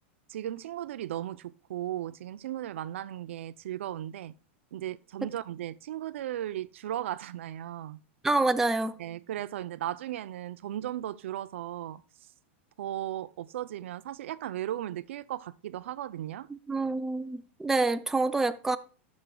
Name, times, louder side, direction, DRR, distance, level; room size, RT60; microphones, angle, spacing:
voice 1, 0.3-4.3 4.7-8.0 9.0-12.0 12.8-16.5, right 12 dB, 80° right, 0.4 m, -36 dB
voice 2, 8.2-9.0 16.7-18.8, right 3 dB, 5° right, 0.4 m, -27 dB
15.0 x 6.3 x 2.2 m
supercardioid pair, 140°, 7 cm